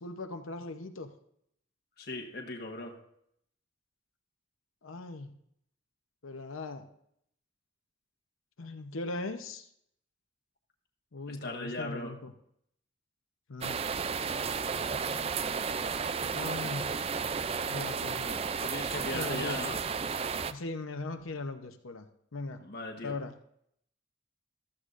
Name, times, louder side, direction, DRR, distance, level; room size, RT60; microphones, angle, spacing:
voice 1, 0.0-1.1 4.8-5.3 6.2-6.9 8.6-9.7 11.1-12.3 13.5-13.8 16.3-17.0 17.7-18.5 19.1-19.6 20.5-22.1 22.3-22.6 23.0-23.3, left 3 dB, 90° left, 6 dB, 0.9 m, -39 dB
voice 2, 2.0-2.9 11.3-12.1 18.6-19.8 22.6-23.2, left 2 dB, 50° left, 1 dB, 1.3 m, -38 dB
sound 1, 13.6-20.5, right 5 dB, 30° right, 0.3 m, -33 dB
14.5 x 13.0 x 2.6 m, 0.71 s
head